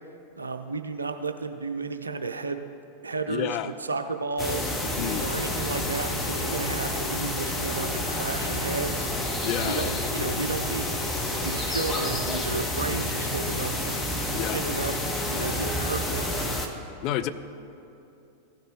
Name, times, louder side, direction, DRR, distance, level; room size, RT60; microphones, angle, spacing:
voice 1, 0.4-2.7 3.0-3.6 3.9-4.7 5.2-9.1 9.5-10.9 11.4-14.0 14.5-14.9 15.3-16.5, right 4 dB, 75° right, 8 dB, 0.4 m, -32 dB
voice 2, 3.3-3.7 5.0-5.3 9.4-10.3 14.3-14.6 17.0-17.3, left 11 dB, 40° left, 11 dB, 0.4 m, -30 dB
sound 1, 4.4-16.7, left 1 dB, 15° left, 0.9 m, -29 dB
15.5 x 6.6 x 3.1 m, 2.7 s
figure-of-eight pair, 90°, 0 cm